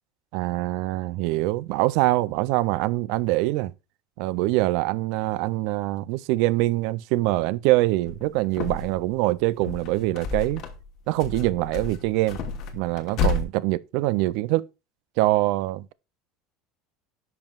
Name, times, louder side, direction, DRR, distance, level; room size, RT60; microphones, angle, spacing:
voice 1, 0.3-3.7 4.2-10.6 11.1-12.4 12.7-14.6 15.2-15.9, right 18 dB, 60° right, 0.3 m, -24 dB
sound 1, 8.0-9.1 9.4-10.9 11.2-13.4, left 4 dB, 45° left, 1.1 m, -30 dB
10.5 x 5.4 x 2.3 m
cardioid pair, 165°, 0 cm